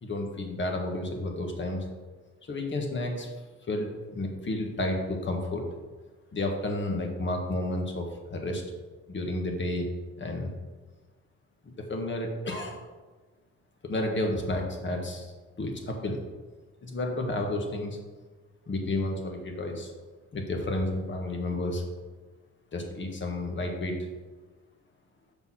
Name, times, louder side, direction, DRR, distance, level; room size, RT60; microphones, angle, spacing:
voice 1, 0.0-1.9 2.5-3.3 3.7-5.6 6.3-8.6 9.1-9.9 10.2-10.5 11.9-12.8 13.8-15.3 15.6-16.2 16.8-18.0 18.7-19.9 20.3-21.8 22.7-24.0, left 1 dB, 40° left, 2 dB, 1.6 m, -31 dB
6.4 x 5.3 x 5.8 m, 1.3 s
cardioid pair, 90°, 30 cm